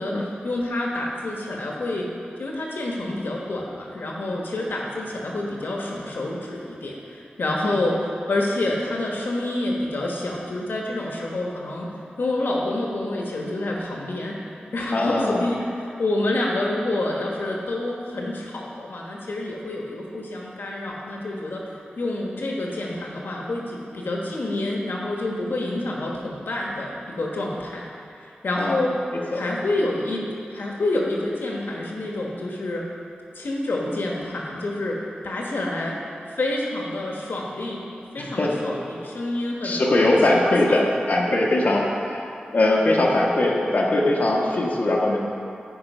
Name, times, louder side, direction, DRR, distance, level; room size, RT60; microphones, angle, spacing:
voice 1, 0.0-2.1 2.4-14.4 14.7-27.8 28.1-29.0 29.3-32.8 33.3-36.0 36.2-37.9 38.1-39.8 40.3-40.8, left 2 dB, 85° left, -2 dB, 1.2 m, -28 dB
voice 2, 14.9-15.4 28.6-28.8 29.3-29.4 38.2-38.7 39.6-42.3 42.5-45.2, left 1 dB, 60° left, -3 dB, 1.2 m, -21 dB
14.0 x 5.0 x 5.4 m, 2.6 s
wide cardioid pair, 105°, 3 cm